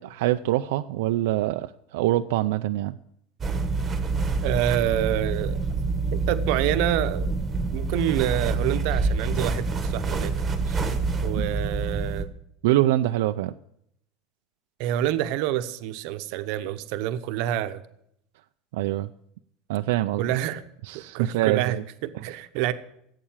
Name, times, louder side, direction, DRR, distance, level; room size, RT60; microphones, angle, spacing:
voice 1, 0.0-3.0 10.6-10.8 11.3-11.6 12.6-13.5 18.7-19.1 19.7-20.3 20.8-21.8 22.1-22.4, right 15 dB, 75° right, 8 dB, 0.4 m, -25 dB
sound 1, 3.4-12.2, right 4 dB, 15° right, 1.2 m, -27 dB
voice 2, 4.4-5.6 6.1-7.3 7.7-10.3 11.2-12.3 14.8-17.8 20.2-20.6 20.9-22.7, right 12 dB, 50° right, 11 dB, 0.9 m, -27 dB
16.0 x 8.5 x 7.3 m, 0.75 s
cardioid pair, 175°, 0 cm